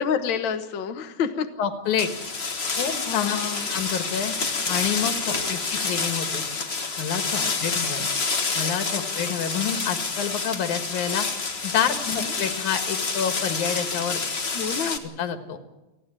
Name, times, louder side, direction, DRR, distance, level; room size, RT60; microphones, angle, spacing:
voice 1, 0.0-1.5 3.1-3.7 5.3-5.6 7.4-7.6 7.9-8.1 8.9-9.1 12.1-12.3 14.5-15.0, left 7 dB, 50° left, 6 dB, 1.7 m, -29 dB
voice 2, 1.6-2.1 2.8-3.4 3.7-4.3 4.7-6.4 7.0-8.1 8.5-11.3 11.6-14.2 15.2-15.6, left 8 dB, 90° left, 8 dB, 3.0 m, -28 dB
sound 1, 2.0-15.0, left 4 dB, 35° left, 1.0 m, -28 dB
29.5 x 10.0 x 10.0 m, 1.0 s
omnidirectional pair, 3.3 m